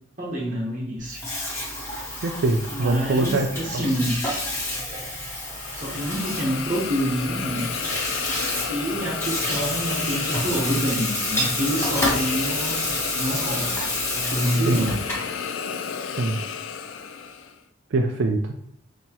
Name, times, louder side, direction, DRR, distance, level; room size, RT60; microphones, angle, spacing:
voice 1, 0.2-1.2 2.7-4.2 5.7-7.7 8.6-12.8 13.2-15.0, equal, 40° right, -4 dB, 0.9 m, -27 dB
Water tap faucet / Sink (filling or washing), 1.0-15.3, left 1 dB, 15° left, 1.2 m, -29 dB
voice 2, 2.2-3.5 3.7-3.8 14.7-14.9 16.2-16.4 17.9-18.5, right 2 dB, 65° right, 4 dB, 0.4 m, -23 dB
Hiss, 5.5-17.6, left 6 dB, 85° left, 0.4 m, -32 dB
5.4 x 2.8 x 2.9 m, 0.66 s
head